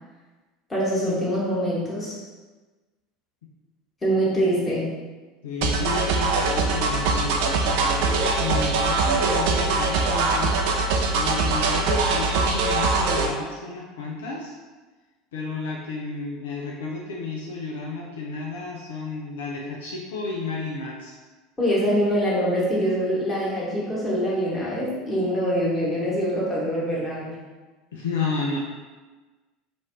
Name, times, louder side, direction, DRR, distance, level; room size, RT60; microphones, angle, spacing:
voice 1, 0.7-2.2 4.0-5.0 21.6-27.4, equal, 20° left, -6 dB, 1.2 m, -24 dB
voice 2, 5.4-10.5 10.9-14.6 15.3-21.2 27.9-28.6, left 3 dB, 70° left, -2 dB, 0.4 m, -32 dB
sound 1, 5.6-13.3, right 3 dB, 60° right, 0.3 m, -22 dB
3.1 x 2.4 x 2.8 m, 1.3 s
figure-of-eight pair, 75°, 0 cm